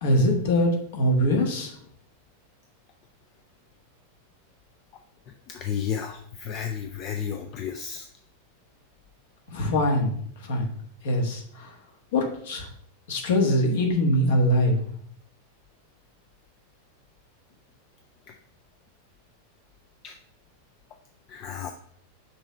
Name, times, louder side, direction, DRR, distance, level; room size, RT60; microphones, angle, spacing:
voice 1, 0.0-1.7 9.5-10.1 10.4-10.7 11.0-11.7 12.1-12.7 13.1-14.8, left 1 dB, 60° left, 1 dB, 1.4 m, -23 dB
voice 2, 5.5-8.1 20.0-20.1 21.3-21.7, left 8 dB, 35° left, 5 dB, 0.5 m, -32 dB
6.1 x 3.2 x 5.1 m, 0.62 s
figure-of-eight pair, 90°, 0 cm